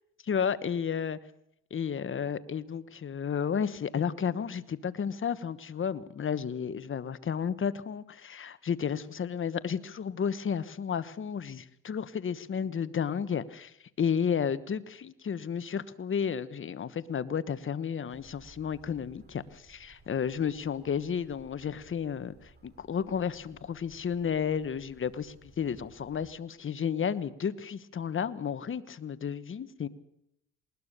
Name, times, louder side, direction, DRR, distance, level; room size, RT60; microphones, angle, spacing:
voice 1, 0.2-1.2 1.7-29.9, left 7 dB, 40° left, 15 dB, 1.3 m, -32 dB
sound 1, 18.1-26.3, right 3 dB, 35° right, 4.9 m, -59 dB
20.0 x 20.0 x 6.8 m, 0.76 s
cardioid pair, 90°, 30 cm